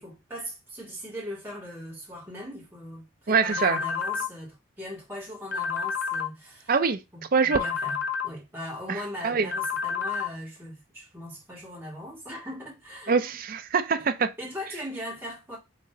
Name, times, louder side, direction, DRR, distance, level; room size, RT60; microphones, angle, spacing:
voice 1, 0.0-6.7 7.1-13.3 14.4-15.6, equal, 10° right, 1.9 m, -39 dB
voice 2, 3.3-3.8 6.7-7.0 7.3-7.6 8.9-9.5 13.1-14.3, right 5 dB, 45° right, 0.5 m, -24 dB
sound 1, 3.5-4.3 5.5-6.3 7.5-8.3 9.5-10.3, left 6 dB, 55° left, 0.7 m, -29 dB
6.0 x 3.0 x 2.7 m
head